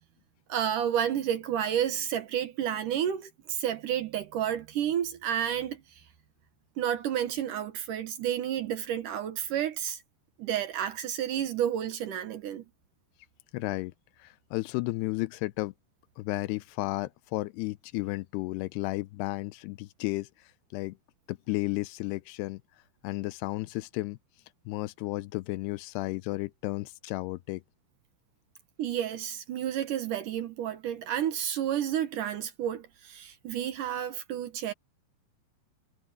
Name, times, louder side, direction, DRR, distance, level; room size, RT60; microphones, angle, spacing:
voice 1, 0.5-5.8 6.8-10.0 10.4-12.6 28.8-34.7, right 10 dB, 65° right, 2.4 m, -31 dB
voice 2, 13.5-13.9 14.2-15.7 16.2-20.3 20.7-21.0 21.3-22.6 23.0-24.2 24.7-27.6, left 21 dB, 85° left, 2.7 m, -33 dB
omnidirectional pair, 4.7 m